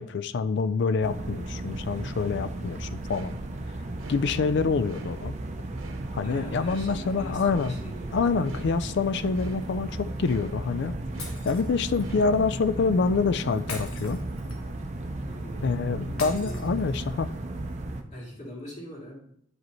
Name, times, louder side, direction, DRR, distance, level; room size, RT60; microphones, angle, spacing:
voice 1, 0.0-3.4 4.1-5.4 6.1-7.7 8.1-14.2 15.6-17.3, left 4 dB, 55° left, 14 dB, 0.4 m, -26 dB
sound 1, 1.0-18.0, right 2 dB, 35° right, 0.5 m, -35 dB
sound 2, 3.1-14.4, right 2 dB, 70° right, 0.9 m, -51 dB
voice 2, 6.2-8.6 15.3-16.6 18.1-19.2, left 1 dB, 35° left, -3 dB, 2.1 m, -42 dB
Shatter, 11.2-12.1 13.7-14.8 16.2-17.2, left 3 dB, 80° left, 1.4 m, -41 dB
9.5 x 5.1 x 3.0 m, 0.69 s
head